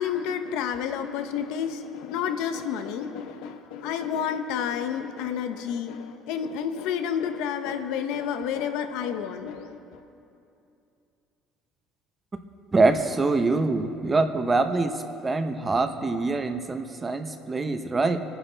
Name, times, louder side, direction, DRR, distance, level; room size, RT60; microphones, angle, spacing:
voice 1, 0.0-10.0, left 8 dB, 80° left, 8 dB, 1.0 m, -30 dB
voice 2, 12.7-14.9 15.2-18.2, right 3 dB, 20° right, 8 dB, 0.9 m, -24 dB
24.5 x 10.0 x 4.0 m, 2.6 s
cardioid pair, 120°, 0 cm